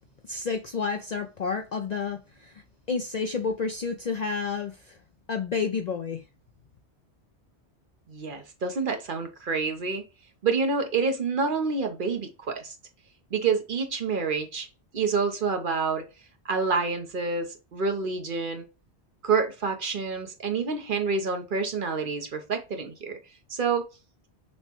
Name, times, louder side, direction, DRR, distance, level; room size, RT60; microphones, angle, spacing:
voice 1, 0.3-2.6 2.9-5.0 5.3-6.2, left 5 dB, 55° left, 0.5 m, -30 dB
voice 2, 8.1-10.0 10.4-12.7 13.3-14.7 14.9-16.0 16.4-18.6 19.2-23.2 23.5-23.9, right 4 dB, 55° right, 0.9 m, -28 dB
6.1 x 2.2 x 2.9 m
omnidirectional pair, 1.1 m